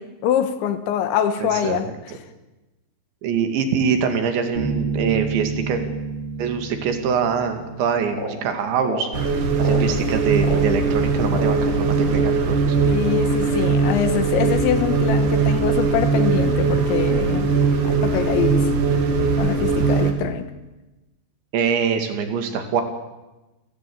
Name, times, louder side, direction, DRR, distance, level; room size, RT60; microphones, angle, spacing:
voice 1, 0.0-1.9 12.9-17.5 17.9-18.7 19.4-20.5, left 9 dB, 75° left, 3.5 m, -24 dB
voice 2, 1.4-2.2 3.2-5.8 6.4-12.6 21.5-22.8, right 6 dB, 70° right, 4.5 m, -24 dB
Bass guitar, 4.5-8.2, right 4 dB, 35° right, 1.1 m, -29 dB
sound 1, 8.1-8.4 8.8-9.1 9.6-9.9 10.4-10.6 11.3-11.6, left 3 dB, 35° left, 5.5 m, -30 dB
sound 2, 9.1-20.1, right 4 dB, 50° right, 3.2 m, -20 dB
29.5 x 15.5 x 8.7 m
omnidirectional pair, 5.5 m